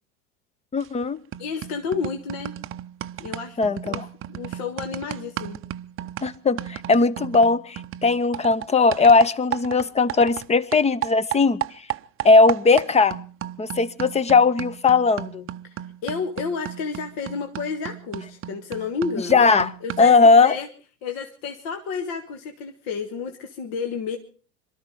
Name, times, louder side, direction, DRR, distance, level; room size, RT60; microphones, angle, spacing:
voice 1, 0.7-1.2 3.6-4.1 6.2-11.6 12.2-13.2 13.6-15.4 19.3-19.7 20.0-20.6, left 4 dB, 15° left, 19 dB, 0.7 m, -18 dB
sound 1, 0.8-1.0 1.3-10.5 10.7-20.2, right 13 dB, 30° right, 0.7 m, -35 dB
voice 2, 1.4-2.5 3.2-4.0 4.3-5.6 15.6-19.4 19.8-20.7 21.0-24.2, left 5 dB, 55° left, 6 dB, 1.7 m, -31 dB
23.0 x 13.0 x 4.8 m, 0.41 s
hypercardioid pair, 95°, 42 cm